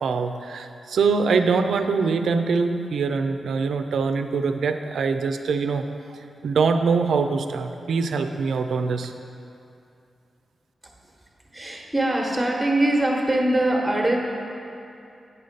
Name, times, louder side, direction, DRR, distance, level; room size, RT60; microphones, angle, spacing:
voice 1, 0.0-9.1, right 5 dB, 85° right, 7 dB, 0.4 m, -23 dB
voice 2, 11.5-14.2, right 1 dB, 10° right, 0 dB, 1.1 m, -22 dB
8.8 x 4.0 x 6.5 m, 2.6 s
cardioid pair, 95°, 0 cm